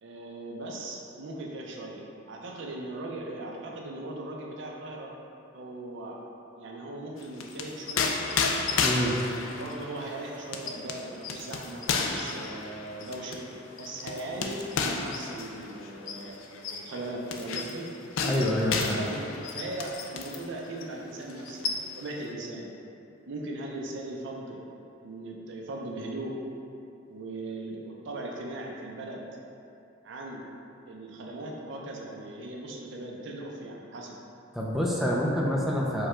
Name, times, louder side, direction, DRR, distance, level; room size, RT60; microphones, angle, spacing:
voice 1, 0.0-2.0 2.3-5.1 5.5-6.2 6.6-8.5 9.2-13.4 13.8-16.4 16.8-17.9 18.9-22.7 23.3-24.6 25.0-26.3 27.1-29.2 30.0-30.5 30.9-34.2, right 2 dB, 65° right, -1 dB, 0.5 m, -38 dB
sound 1, 7.2-20.5 20.8-21.0 21.3-22.1, left 4 dB, 75° left, 0.4 m, -32 dB
voice 2, 8.8-9.2 18.2-19.1 34.5-36.1, equal, ahead, -4 dB, 0.4 m, -27 dB
4.7 x 2.3 x 4.3 m, 2.6 s
head